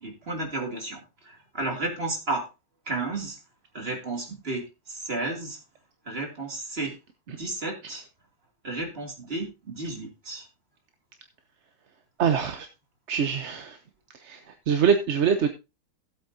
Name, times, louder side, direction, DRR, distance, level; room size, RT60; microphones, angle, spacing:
voice 1, 0.0-2.5 2.9-3.4 3.7-5.6 6.1-6.9 7.3-8.0 8.6-10.5, right 2 dB, 35° right, 1 dB, 2.9 m, -32 dB
voice 2, 12.2-12.7 13.1-13.8 14.2-14.4 14.7-15.5, right 7 dB, 50° right, 7 dB, 1.0 m, -23 dB
15.5 x 8.3 x 2.7 m, 0.27 s
omnidirectional pair, 1.8 m